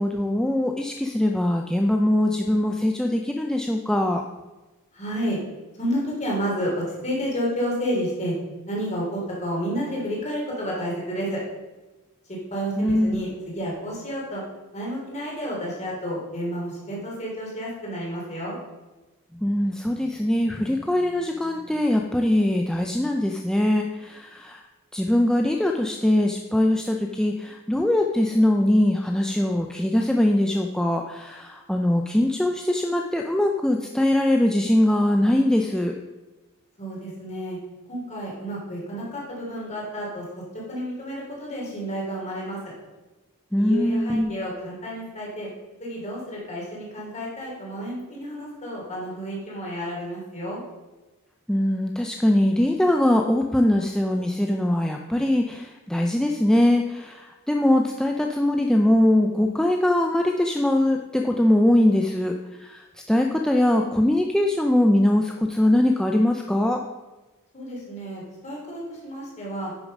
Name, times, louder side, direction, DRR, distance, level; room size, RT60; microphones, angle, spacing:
voice 1, 0.0-4.2 12.8-13.2 19.4-24.6 24.9-35.9 43.5-44.3 51.5-66.8, left 1 dB, 5° left, 2 dB, 0.4 m, -22 dB
voice 2, 4.9-5.4 5.8-8.3 8.7-11.4 12.5-13.3 13.5-14.4 14.7-18.5 36.8-37.6 37.9-40.2 40.5-42.6 43.6-45.5 45.8-50.6 67.5-69.7, equal, 30° left, -4 dB, 3.3 m, -30 dB
9.9 x 6.6 x 5.3 m, 1.1 s
head